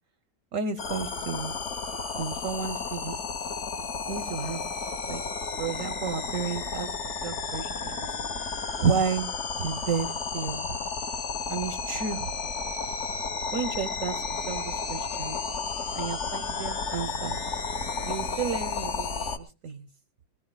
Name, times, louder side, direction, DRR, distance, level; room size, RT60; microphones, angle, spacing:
voice 1, 0.5-1.6 2.2-3.2 4.1-4.6 5.1-5.2 5.6-6.9 7.2-8.1 8.8-9.3 9.6-10.8 11.5-12.3 13.5-15.4 15.9-17.4 18.0-19.9, right 6 dB, 55° right, 12 dB, 1.0 m, -32 dB
sound 1, 0.8-19.4, left 4 dB, 40° left, 1.4 m, -32 dB
21.0 x 18.0 x 2.2 m, 0.32 s
omnidirectional pair, 2.0 m